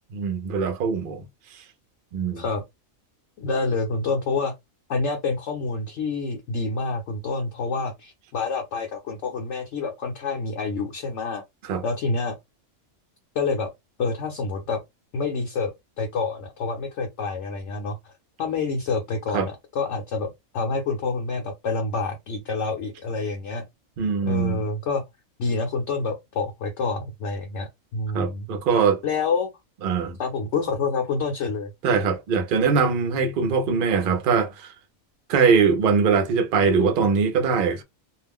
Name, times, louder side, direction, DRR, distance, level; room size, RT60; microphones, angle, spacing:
voice 1, 0.1-1.2 2.1-2.4 11.6-11.8 19.3-19.5 24.0-24.6 28.1-29.0 29.8-30.2 31.8-34.7 35.3-37.8, right 5 dB, 60° right, 0.5 m, -22 dB
voice 2, 3.4-4.5 4.9-11.4 11.8-12.4 13.3-13.7 14.0-14.8 15.1-18.1 18.4-23.7 24.2-25.0 25.4-28.5 29.0-29.5 30.2-31.7, left 4 dB, 60° left, 0.9 m, -27 dB
2.4 x 2.0 x 3.5 m
omnidirectional pair, 1.5 m